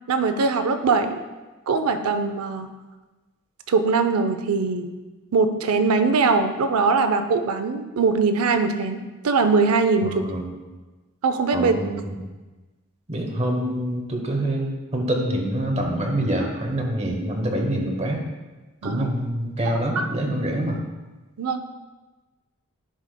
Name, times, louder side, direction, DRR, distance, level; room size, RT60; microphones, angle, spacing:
voice 1, 0.1-1.2 1.7-2.7 3.7-4.9 5.3-10.2 11.2-11.7 18.8-19.1 21.4-21.6, right 4 dB, 85° right, 8 dB, 0.5 m, -21 dB
voice 2, 10.0-10.5 11.5-12.2 13.1-18.2 18.8-20.8, right 1 dB, 30° right, 1 dB, 0.9 m, -26 dB
10.0 x 4.8 x 2.2 m, 1.2 s
head